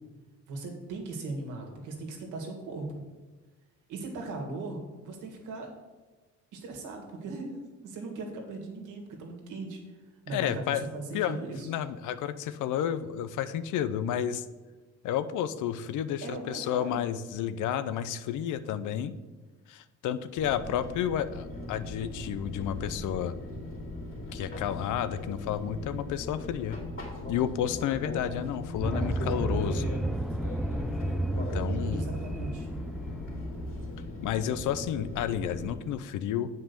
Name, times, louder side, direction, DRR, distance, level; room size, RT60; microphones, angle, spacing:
voice 1, 0.5-3.0 3.9-5.7 6.5-9.8 10.3-11.7 16.2-17.0 31.9-32.7, right 2 dB, 85° right, 2 dB, 2.1 m, -38 dB
voice 2, 10.3-10.9 11.1-11.4 11.7-14.4 15.0-19.1 19.7-23.3 24.3-26.8 27.3-29.9 31.4-32.1 34.2-36.5, left 10 dB, 85° left, 12 dB, 0.7 m, -31 dB
Fixed-wing aircraft airplane, 20.4-35.7, left 2 dB, 45° left, 3.0 m, -39 dB
sound 1, 28.8-33.9, right 2 dB, ahead, 0.4 m, -32 dB
7.8 x 5.4 x 6.9 m, 1.3 s
cardioid pair, 90°, 30 cm